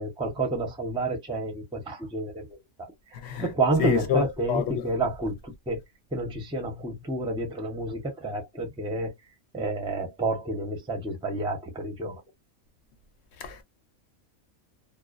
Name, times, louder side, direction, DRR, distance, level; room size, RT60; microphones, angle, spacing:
voice 1, 0.0-2.9 3.4-5.8 6.1-9.1 9.5-12.2, right 2 dB, 5° right, 0.4 m, -29 dB
voice 2, 3.8-4.2 4.5-4.8 13.4-13.6, left 7 dB, 60° left, 0.8 m, -26 dB
2.4 x 2.2 x 2.4 m
omnidirectional pair, 1.5 m